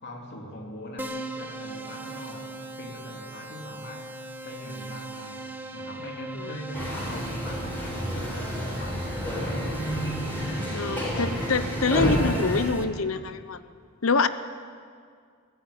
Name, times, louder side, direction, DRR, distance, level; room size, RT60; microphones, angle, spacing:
voice 1, 0.0-9.5 11.3-11.7, equal, 55° left, 1 dB, 3.1 m, -41 dB
Keyboard (musical), 1.0-12.8, right 2 dB, 10° right, 1.5 m, -39 dB
sound 1, 6.7-12.6, equal, 10° left, 7.4 m, -29 dB
voice 2, 10.7-13.6 14.0-14.3, left 4 dB, 75° left, 12 dB, 0.9 m, -25 dB
22.5 x 16.0 x 10.0 m, 2.1 s
head